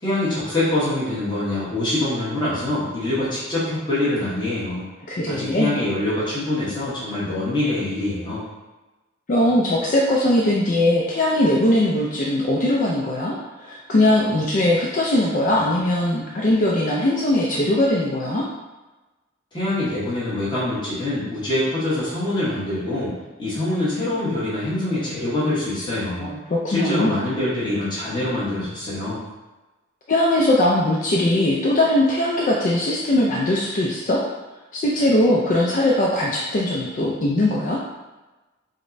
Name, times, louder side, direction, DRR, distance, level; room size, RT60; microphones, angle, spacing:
voice 1, 0.0-4.9 5.3-8.4 19.5-23.1 23.4-26.3 26.7-29.2, left 1 dB, 20° left, -10 dB, 1.0 m, -24 dB
voice 2, 5.1-5.7 9.3-18.4 26.2-27.2 30.1-34.2 34.7-37.8, left 1 dB, 40° left, -4 dB, 0.4 m, -20 dB
5.0 x 2.1 x 2.6 m, 1.1 s
head